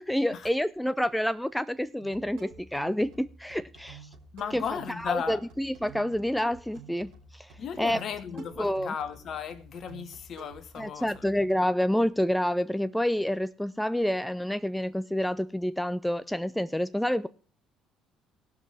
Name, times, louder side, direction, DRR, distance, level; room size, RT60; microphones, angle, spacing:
voice 1, 0.0-4.1 4.5-4.6 5.0-7.5 7.8-8.0 8.6-8.9 10.8-17.3, equal, 5° left, 0.4 m, -28 dB
sound 1, 2.0-11.5, right 4 dB, 70° right, 3.3 m, -50 dB
voice 2, 4.3-5.4 7.6-11.2, left 7 dB, 50° left, 1.2 m, -36 dB
17.5 x 6.0 x 4.8 m
hypercardioid pair, 55°, 0 cm